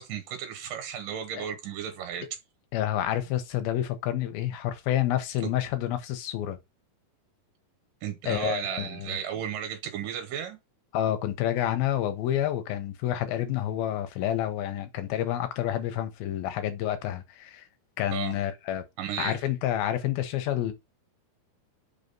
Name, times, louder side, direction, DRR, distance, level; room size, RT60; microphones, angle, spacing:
voice 1, 0.0-2.3 5.4-5.5 8.0-10.6 18.1-18.4 19.0-19.4, right 9 dB, 70° right, 2.7 m, -34 dB
voice 2, 2.7-6.6 8.3-9.2 10.9-17.6 18.0-18.8 19.2-20.7, left 12 dB, 80° left, 2.8 m, -29 dB
5.8 x 4.1 x 5.2 m
omnidirectional pair, 4.3 m